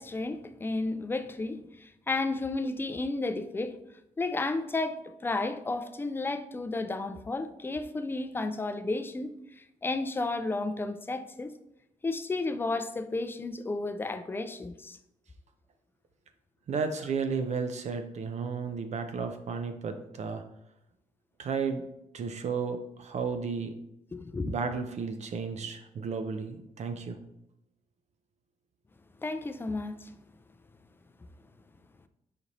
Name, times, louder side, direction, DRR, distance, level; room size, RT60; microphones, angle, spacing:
voice 1, 0.0-3.8 4.2-11.5 12.0-15.0 24.1-24.6 29.2-30.1, left 3 dB, 15° left, 0.3 m, -32 dB
voice 2, 16.7-20.4 21.4-21.8 22.1-23.7 24.4-27.2, right 5 dB, 55° right, 0.4 m, -33 dB
5.0 x 2.6 x 2.9 m
cardioid pair, 75°, 14 cm